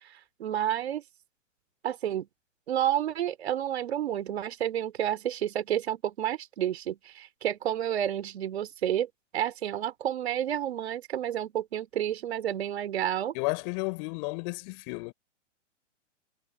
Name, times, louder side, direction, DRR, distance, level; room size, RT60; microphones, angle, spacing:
voice 1, 0.4-1.0 1.8-2.3 2.7-9.1 9.3-13.3, right 11 dB, 55° right, 3.5 m, -30 dB
voice 2, 13.3-15.1, left 33 dB, 40° left, 5.1 m, -32 dB
figure-of-eight pair, 110°, 37 cm